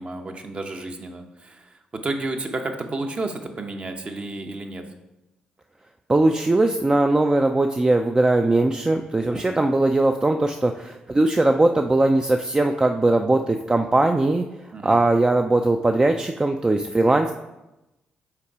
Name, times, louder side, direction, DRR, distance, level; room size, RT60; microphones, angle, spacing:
voice 1, 0.0-4.8 9.3-9.6 14.7-15.0, right 2 dB, 40° right, 5 dB, 0.9 m, -32 dB
voice 2, 6.1-14.4 14.8-17.3, right 2 dB, 25° right, 5 dB, 0.4 m, -20 dB
5.8 x 3.9 x 4.7 m, 0.96 s
supercardioid pair, 50°, 3 cm